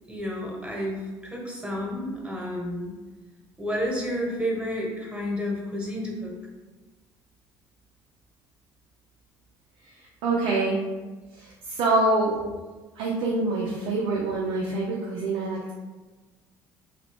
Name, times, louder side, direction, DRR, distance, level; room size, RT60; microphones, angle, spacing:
voice 1, 0.1-2.9 3.6-6.4, equal, 10° right, -2 dB, 1.1 m, -30 dB
voice 2, 10.2-10.8 11.3-12.4 13.0-15.7, right 2 dB, 80° right, -4 dB, 0.6 m, -25 dB
2.8 x 2.6 x 3.4 m, 1.3 s
supercardioid pair, 75°, 9 cm